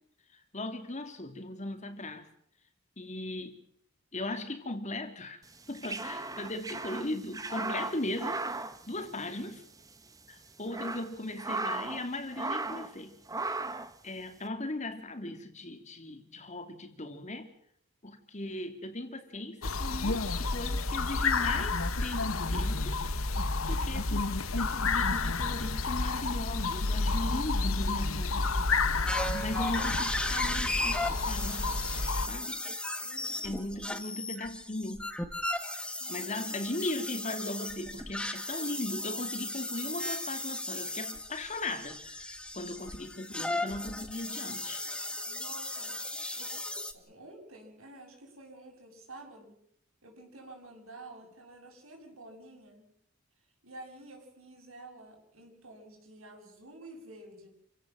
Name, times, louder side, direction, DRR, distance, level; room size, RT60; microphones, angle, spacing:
voice 1, 0.5-2.3 3.0-3.6 4.1-5.4 5.7-8.4 8.9-9.6 10.3-13.1 14.0-17.5 18.0-23.0 23.7-28.6 29.3-31.8 32.3-32.6 33.4-35.1 36.1-44.9, left 1 dB, 35° left, 7 dB, 2.6 m, -38 dB
sound 1, 5.5-9.6 9.9-10.0 10.5-12.1 12.3-12.9 13.3-13.9, right 3 dB, 15° right, 1.3 m, -36 dB
sound 2, 19.6-32.3, left 3 dB, 80° left, 1.3 m, -30 dB
sound 3, 29.1-46.9, left 1 dB, 5° left, 1.5 m, -36 dB
voice 2, 33.0-33.6 36.0-36.5 45.3-46.0 46.3-46.7 46.9-49.6 50.0-52.9 53.6-57.5, right 2 dB, 90° right, 2 dB, 7.9 m, -50 dB
28.0 x 16.5 x 7.6 m, 0.71 s
head